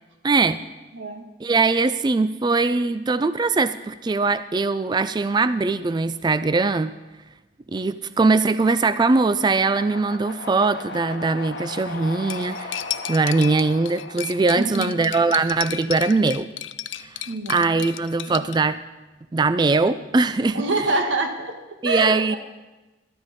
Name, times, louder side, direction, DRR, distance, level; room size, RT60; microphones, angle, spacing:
voice 1, 0.2-0.6 1.4-6.9 7.7-16.5 17.0-17.2 17.5-18.8 19.3-20.9 21.8-22.4, right 3 dB, 25° right, 13 dB, 0.3 m, -21 dB
sound 1, 9.3-15.5, left 2 dB, 60° left, 1.3 m, -38 dB
Cutlery silverware, 12.3-18.6, left 12 dB, 80° left, 0.5 m, -34 dB
voice 2, 14.5-15.1 17.3-17.6 18.3-18.4 20.5-21.6 21.8-22.4, right 2 dB, 80° right, 4 dB, 1.5 m, -26 dB
13.0 x 12.5 x 4.1 m, 1.1 s
head